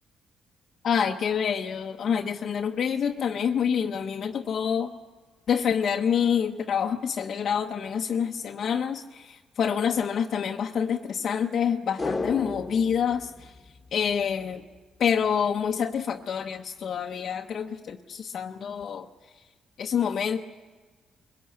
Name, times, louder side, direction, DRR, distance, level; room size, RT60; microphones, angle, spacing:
voice 1, 0.8-4.9 5.5-13.5 13.9-14.6 15.0-19.1 19.8-20.4, left 7 dB, 60° left, 2 dB, 0.9 m, -27 dB
sound 1, 12.0-14.5 14.7-14.8, left 3 dB, 20° left, 1.5 m, -34 dB
21.5 x 17.0 x 8.7 m, 1.4 s
cardioid pair, 90°, 0 cm